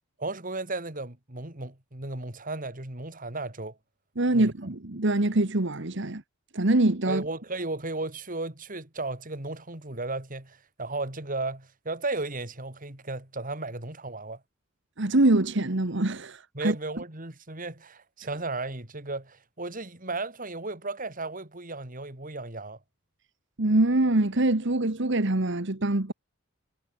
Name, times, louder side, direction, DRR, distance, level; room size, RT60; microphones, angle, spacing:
voice 1, 0.2-3.8 4.3-4.5 7.1-14.4 16.5-22.8, right 2 dB, 40° right, 3.7 m, -35 dB
voice 2, 4.2-6.2 6.5-7.2 15.0-16.7 23.6-26.1, right 2 dB, 60° right, 1.6 m, -24 dB
head